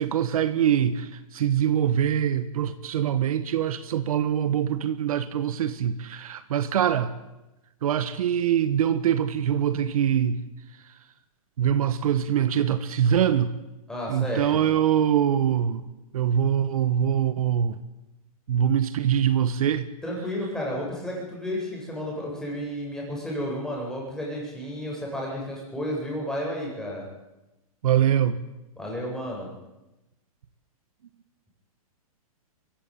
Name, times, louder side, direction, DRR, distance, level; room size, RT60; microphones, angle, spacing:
voice 1, 0.0-7.1 7.8-10.4 11.6-13.5 14.1-15.8 16.1-17.8 18.5-19.9 27.8-28.4, right 9 dB, 70° right, 1.5 m, -23 dB
voice 2, 13.9-14.6 20.0-27.0 28.8-29.5, equal, 5° left, 7.9 m, -32 dB
23.0 x 15.5 x 9.2 m
hypercardioid pair, 145°, 19 cm